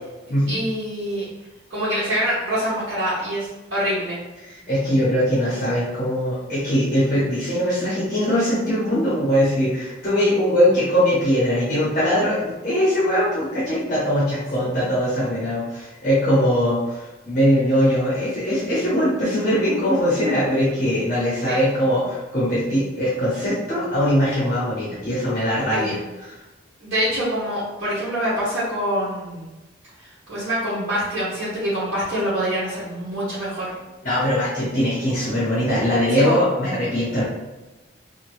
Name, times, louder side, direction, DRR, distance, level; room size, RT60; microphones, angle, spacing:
voice 1, 0.5-1.2 1.7-4.2 14.6-14.8 21.4-21.6 25.7-26.0 26.8-29.5 30.3-33.8 36.2-36.4, equal, 60° right, -10 dB, 1.1 m, -25 dB
voice 2, 4.4-26.3 34.0-37.2, equal, 40° left, -9 dB, 1.0 m, -21 dB
2.8 x 2.4 x 3.1 m, 1.1 s
head